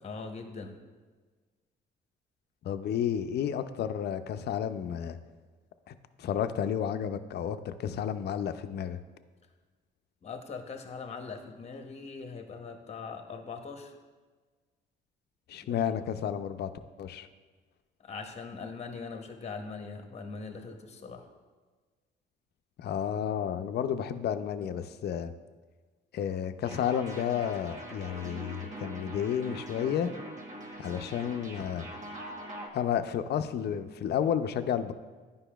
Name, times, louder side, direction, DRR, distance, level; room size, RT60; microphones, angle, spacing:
voice 1, 0.0-0.8 10.2-13.9 15.6-15.8 18.0-21.3, left 4 dB, 35° left, 6 dB, 0.7 m, -41 dB
voice 2, 2.6-5.2 5.9-9.0 15.5-16.7 17.0-17.3 22.8-25.3 26.1-30.1 30.8-31.9 32.7-34.9, left 9 dB, 55° left, 10 dB, 0.4 m, -31 dB
sound 1, 26.6-32.7, right 1 dB, 40° right, 1.0 m, -43 dB
9.8 x 5.3 x 2.3 m, 1.4 s
cardioid pair, 90°, 20 cm